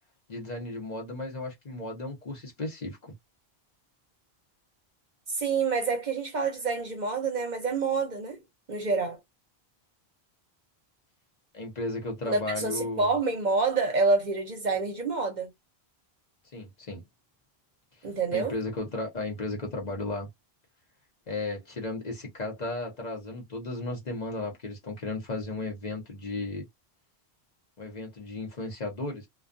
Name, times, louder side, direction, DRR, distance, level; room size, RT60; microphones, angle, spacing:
voice 1, 0.3-3.1 11.5-13.1 16.5-17.0 18.0-20.3 21.3-26.7 27.8-29.3, left 2 dB, 45° left, 0.9 m, -35 dB
voice 2, 5.3-8.4 8.7-9.2 12.3-15.5 18.0-18.5, right 4 dB, 50° right, 0.7 m, -27 dB
2.3 x 2.3 x 2.4 m
omnidirectional pair, 1.0 m